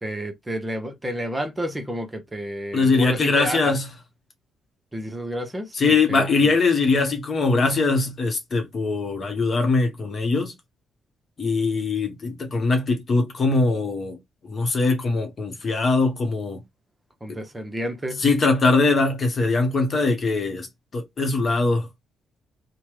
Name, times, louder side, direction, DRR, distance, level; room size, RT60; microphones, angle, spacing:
voice 1, 0.0-3.8 4.9-5.8 6.1-6.3 17.2-18.2, equal, 15° right, 0.8 m, -30 dB
voice 2, 2.7-3.9 5.7-10.5 11.4-14.2 14.4-16.6 18.2-20.7 20.9-21.9, left 3 dB, 40° left, 0.9 m, -21 dB
2.9 x 2.2 x 3.3 m
figure-of-eight pair, 40°, 0 cm